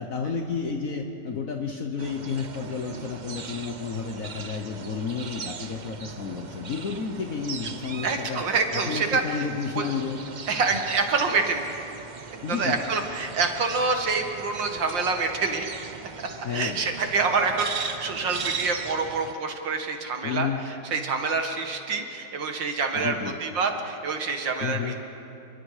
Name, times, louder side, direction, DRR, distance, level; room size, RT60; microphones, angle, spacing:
voice 1, 0.0-8.4 8.7-10.2 12.4-12.8 16.4-16.8 20.2-20.6 22.9-23.4 24.6-25.0, left 6 dB, 55° left, 3 dB, 1.4 m, -31 dB
sound 1, 2.0-19.3, right 5 dB, 50° right, 0.5 m, -39 dB
voice 2, 8.0-9.5 9.7-9.8 10.5-11.8 12.5-15.7 16.5-20.5 20.9-23.2 23.4-25.0, right 4 dB, 90° right, 4 dB, 2.5 m, -26 dB
29.0 x 23.0 x 5.0 m, 2.8 s
omnidirectional pair, 1.9 m